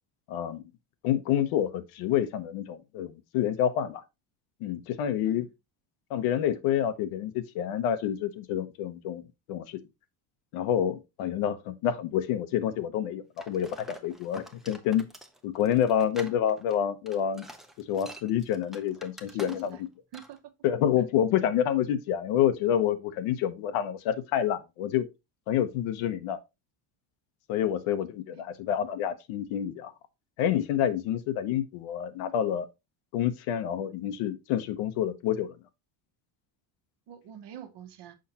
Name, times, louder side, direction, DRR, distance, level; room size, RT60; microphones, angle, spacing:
voice 1, 0.3-0.6 1.0-4.0 4.6-5.5 6.1-9.2 9.5-9.8 10.5-15.1 15.4-17.4 17.8-19.8 20.6-25.1 25.5-26.4 27.5-29.9 30.4-32.7 33.1-35.6, left 10 dB, 85° left, 1.0 m, -28 dB
sound 1, 13.4-19.9 20.1-20.4, right 1 dB, ahead, 0.6 m, -47 dB
voice 2, 19.3-19.8 20.1-20.4 27.6-27.7 37.1-38.1, right 9 dB, 60° right, 1.2 m, -46 dB
6.3 x 5.4 x 2.9 m
cardioid pair, 135°, 48 cm